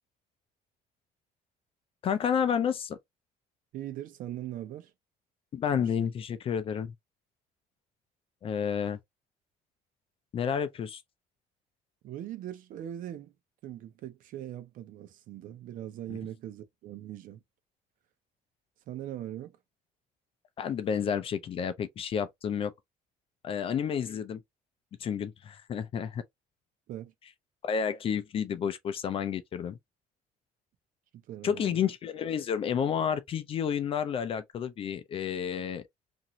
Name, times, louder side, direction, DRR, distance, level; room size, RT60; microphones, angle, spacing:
voice 1, 2.0-3.0 5.5-6.9 8.4-9.0 10.3-11.0 16.1-16.2 20.6-22.7 23.4-24.4 25.0-26.2 27.6-29.8 31.4-35.8, left 7 dB, 35° left, 0.4 m, -30 dB
voice 2, 3.7-4.9 5.7-6.1 12.0-13.3 13.6-17.4 18.9-19.6 26.9-27.1 31.1-31.8, right 12 dB, 60° right, 0.6 m, -41 dB
2.9 x 2.6 x 2.7 m
cardioid pair, 155°, 16 cm